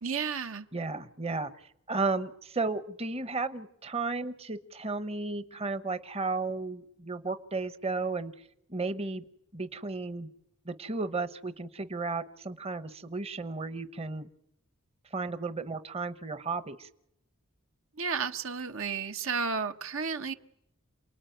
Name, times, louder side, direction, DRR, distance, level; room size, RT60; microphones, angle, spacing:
voice 1, 0.0-0.7 18.0-20.3, right 5 dB, 70° right, 8 dB, 1.3 m, -32 dB
voice 2, 0.7-8.3 8.7-9.2 9.5-10.3 10.7-14.3 15.1-16.9, right 3 dB, 30° right, 12 dB, 1.0 m, -34 dB
29.0 x 20.0 x 9.3 m, 0.78 s
head